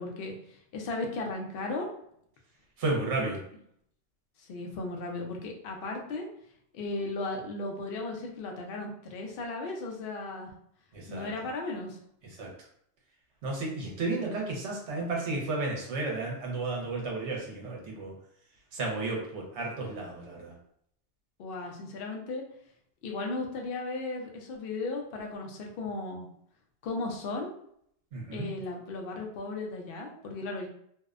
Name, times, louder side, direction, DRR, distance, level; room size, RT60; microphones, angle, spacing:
voice 1, 0.0-1.9 3.2-3.3 4.4-6.3 6.7-10.5 11.1-12.0 21.4-22.4 23.0-26.3 26.8-27.6 28.3-30.7, left 2 dB, 60° left, 1 dB, 0.6 m, -36 dB
voice 2, 2.8-3.4 10.9-11.3 12.4-12.5 13.4-18.1 18.7-20.5 28.1-28.5, right 3 dB, 65° right, -1 dB, 1.0 m, -33 dB
2.6 x 2.1 x 2.4 m, 0.69 s
omnidirectional pair, 1.3 m